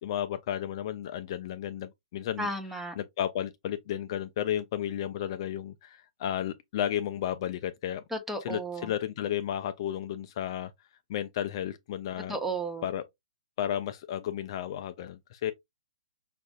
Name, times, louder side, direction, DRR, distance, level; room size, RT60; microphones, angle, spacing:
voice 1, 0.0-2.5 3.0-8.0 8.4-10.7 11.1-12.4 12.8-13.0 13.6-15.5, left 10 dB, 45° left, 0.3 m, -33 dB
voice 2, 2.4-3.0 8.1-8.9 12.3-12.9, right 2 dB, 5° right, 0.6 m, -33 dB
5.0 x 2.4 x 2.2 m
hypercardioid pair, 135°, 3 cm